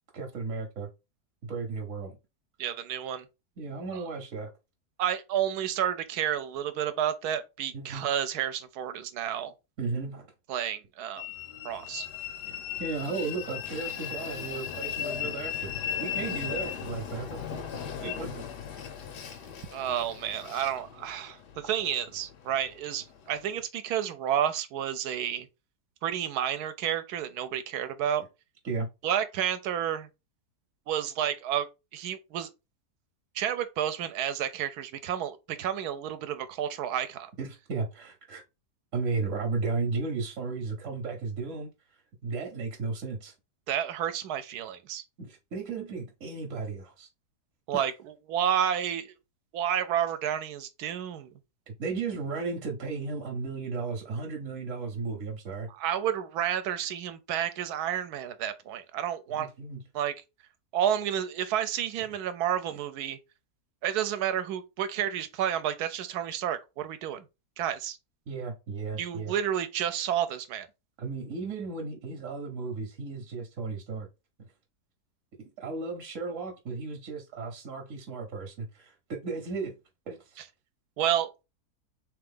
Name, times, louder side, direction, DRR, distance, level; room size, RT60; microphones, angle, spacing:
voice 1, 0.1-0.9 1.4-2.2 3.6-4.5 7.7-8.1 9.8-10.3 12.2-12.3 12.8-18.5 28.6-28.9 37.4-38.4 38.9-41.7 42.2-43.3 45.2-47.1 47.7-47.8 51.7-55.7 59.3-59.8 68.3-69.3 71.0-74.1 75.4-79.7 80.1-80.4, right 4 dB, 55° right, 1.0 m, -35 dB
voice 2, 2.6-3.3 3.9-4.0 5.0-9.5 10.5-11.2 11.6-12.1 19.7-25.5 26.0-28.2 29.0-30.1 30.9-32.5 33.3-37.3 43.7-45.0 47.7-47.9 48.3-49.1 49.5-51.3 55.7-59.5 59.9-60.1 60.7-63.2 63.8-67.2 67.6-68.0 69.0-70.7 81.0-81.3, right 10 dB, 75° right, 1.1 m, -30 dB
Train, 11.2-23.6, left 9 dB, 90° left, 1.5 m, -37 dB
3.4 x 3.3 x 3.6 m
omnidirectional pair, 1.7 m